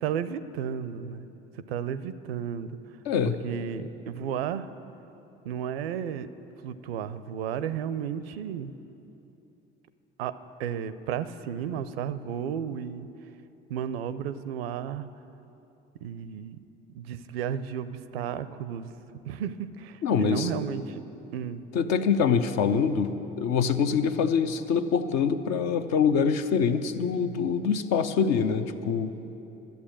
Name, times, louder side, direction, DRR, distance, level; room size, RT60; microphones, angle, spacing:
voice 1, 0.0-1.3 1.7-2.8 3.4-4.7 5.4-6.3 6.6-8.7 10.2-13.1 13.7-15.1 16.0-16.6 16.9-18.9 19.2-21.0 21.3-21.6, right 8 dB, 85° right, 14 dB, 0.5 m, -33 dB
voice 2, 3.1-3.4 20.0-20.5 21.7-29.1, left 6 dB, 60° left, 9 dB, 0.8 m, -25 dB
12.0 x 8.2 x 8.6 m, 2.9 s
hypercardioid pair, 60°, 29 cm